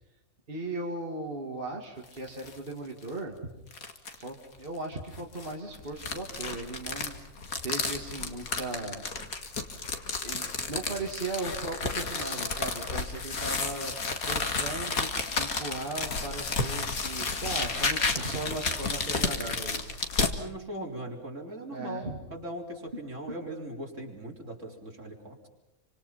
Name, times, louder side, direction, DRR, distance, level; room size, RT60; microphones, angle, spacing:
voice 1, 0.5-3.5 4.2-7.2 7.6-9.1 10.2-14.0 14.2-15.1 15.4-20.0 21.7-22.2, right 2 dB, 40° right, -1 dB, 2.6 m, -37 dB
sound 1, 2.0-2.6 3.0-3.1 3.7-4.3 5.1-20.3, left 4 dB, 75° left, 2.5 m, -32 dB
voice 2, 20.4-25.5, right 1 dB, 55° right, 0 dB, 4.4 m, -39 dB
28.0 x 25.5 x 5.7 m, 0.95 s
omnidirectional pair, 1.5 m